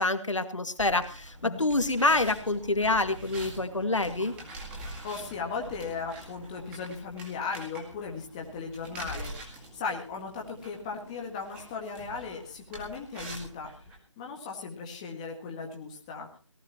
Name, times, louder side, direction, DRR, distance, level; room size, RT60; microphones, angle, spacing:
voice 1, 0.0-4.3, left 2 dB, 80° left, 9 dB, 2.1 m, -27 dB
sound 1, 0.8-14.0, right 1 dB, 5° right, 2.1 m, -45 dB
voice 2, 4.8-13.7 14.2-16.3, left 5 dB, 15° left, 1 dB, 1.8 m, -37 dB
18.0 x 18.0 x 3.0 m, 0.34 s
figure-of-eight pair, 165°, 16 cm